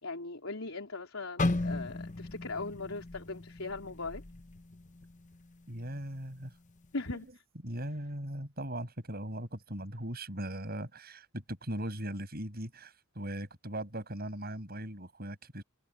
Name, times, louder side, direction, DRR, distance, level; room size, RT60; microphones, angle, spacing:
voice 1, 0.0-4.2 6.9-7.4, left 3 dB, 70° left, 4.2 m, -39 dB
sound 1, 1.4-5.4 5.8-6.0 6.7-7.0, left 2 dB, 35° left, 0.9 m, -35 dB
voice 2, 5.7-6.5 7.6-15.6, right 1 dB, 45° right, 7.8 m, -39 dB
head